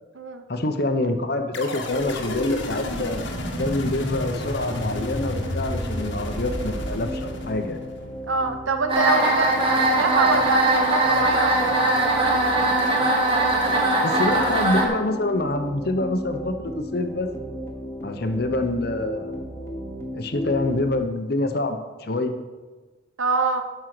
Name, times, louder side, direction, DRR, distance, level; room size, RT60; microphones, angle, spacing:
voice 1, 0.5-3.2 3.6-7.8 14.0-17.3 18.0-19.5 20.1-22.3, left 2 dB, 50° left, 7 dB, 0.9 m, -26 dB
sound 1, 1.5-8.0, left 1 dB, 65° left, 1.4 m, -30 dB
sound 2, 4.2-21.0, equal, 15° left, 1.3 m, -35 dB
voice 2, 8.3-12.0 23.2-23.6, right 3 dB, 80° right, 7 dB, 1.0 m, -25 dB
sound 3, 8.9-14.9, right 2 dB, 25° right, 1.8 m, -20 dB
12.5 x 5.5 x 6.1 m, 1.3 s
head